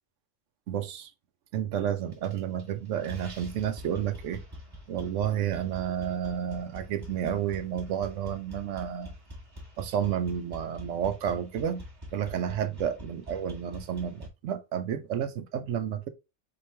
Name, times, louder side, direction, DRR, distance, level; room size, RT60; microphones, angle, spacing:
voice 1, 0.7-1.1 1.5-4.4 4.9-9.1 9.8-11.8 12.1-16.1, right 9 dB, 85° right, 1.0 m, -31 dB
sound 1, 2.1-2.7 3.0-14.3, left 1 dB, 20° right, 1.0 m, -45 dB
4.4 x 3.0 x 3.2 m
omnidirectional pair, 1.2 m